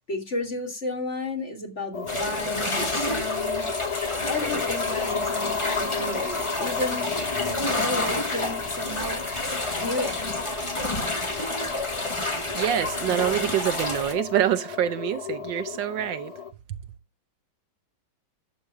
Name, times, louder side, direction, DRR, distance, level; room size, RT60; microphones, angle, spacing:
voice 1, 0.1-3.9 4.3-7.1 7.5-10.2, left 2 dB, 35° left, 3.1 m, -33 dB
sound 1, 1.9-16.5, left 6 dB, 55° left, 0.4 m, -33 dB
sound 2, 2.1-14.1, left 1 dB, 15° left, 1.5 m, -30 dB
voice 2, 12.5-16.3 16.7-16.8, right 10 dB, 75° right, 1.4 m, -26 dB
12.0 x 7.6 x 3.3 m
omnidirectional pair, 2.1 m